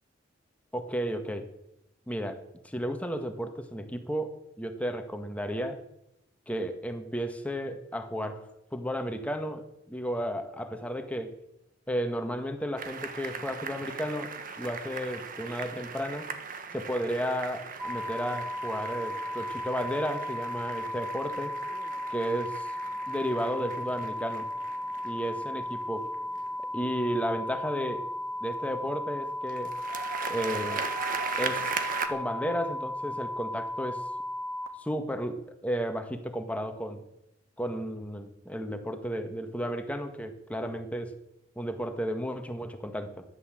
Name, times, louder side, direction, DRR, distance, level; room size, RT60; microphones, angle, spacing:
voice 1, 0.7-1.5 2.1-5.8 6.5-11.4 11.9-16.3 16.7-21.6 22.1-22.7 23.1-24.5 25.0-25.6 25.9-26.1 26.7-28.1 28.4-29.7 30.3-30.9 31.4-31.7 32.1-34.1 34.8-37.0 37.6-41.1 41.5-43.2, equal, 10° left, 6 dB, 1.7 m, -33 dB
sound 1, 12.8-26.8 29.5-32.1, right 5 dB, 50° right, 1.4 m, -38 dB
sound 2, 17.8-34.7, left 1 dB, 20° right, 2.3 m, -35 dB
14.5 x 11.5 x 7.7 m, 0.83 s
head